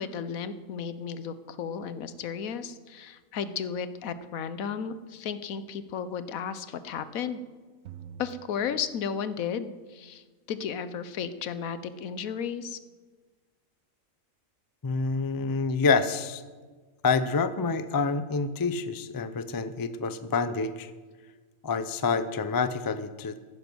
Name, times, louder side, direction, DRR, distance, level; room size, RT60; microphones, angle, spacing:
voice 1, 0.0-7.4 8.2-12.8, left 7 dB, 85° left, 13 dB, 1.2 m, -34 dB
sound 1, 7.9-9.6, right 9 dB, 80° right, 1.2 m, -48 dB
voice 2, 14.8-16.4 17.0-20.9 21.6-23.4, left 4 dB, 35° left, 12 dB, 0.3 m, -27 dB
14.0 x 10.5 x 6.2 m, 1.4 s
omnidirectional pair, 1.4 m